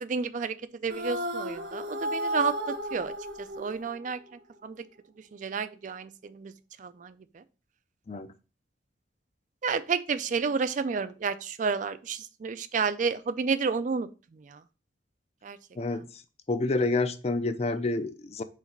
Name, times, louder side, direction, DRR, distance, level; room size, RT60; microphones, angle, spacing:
voice 1, 0.0-0.6 0.8-2.5 2.9-3.1 3.6-4.2 4.6-4.8 5.3-6.5 6.8-7.4 9.6-14.6 15.4-15.6, right 5 dB, 40° right, 13 dB, 0.3 m, -31 dB
sound 1, 0.9-4.3, equal, 85° right, 1.6 m, -33 dB
voice 2, 16.5-18.4, left 2 dB, 35° left, 11 dB, 0.5 m, -28 dB
5.0 x 3.9 x 5.2 m, 0.35 s
head